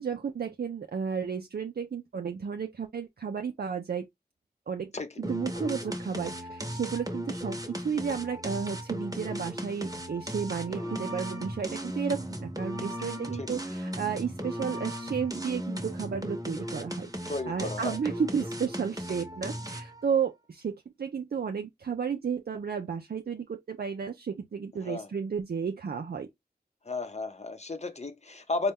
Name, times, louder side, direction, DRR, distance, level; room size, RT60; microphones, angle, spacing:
voice 1, 0.0-4.1 4.7-4.9 5.2-26.3, right 6 dB, 70° right, 0.4 m, -33 dB
sound 1, 5.2-20.0, equal, 20° right, 0.9 m, -36 dB
voice 2, 17.3-18.0 24.8-25.1 26.9-28.7, left 3 dB, 40° left, 0.7 m, -34 dB
4.1 x 2.2 x 3.5 m
wide cardioid pair, 55°, 17 cm